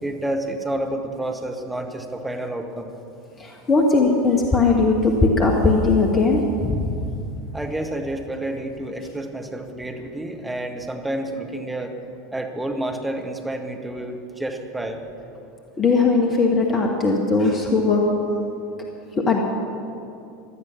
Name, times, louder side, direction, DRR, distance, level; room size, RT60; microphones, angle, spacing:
voice 1, 0.0-2.9 7.5-11.9 12.3-15.0, right 1 dB, 5° right, 2 dB, 1.7 m, -29 dB
voice 2, 3.4-7.0 15.8-18.1 19.2-19.4, left 3 dB, 25° left, 1 dB, 1.6 m, -19 dB
17.0 x 12.0 x 6.0 m, 2.6 s
figure-of-eight pair, 80°, 0 cm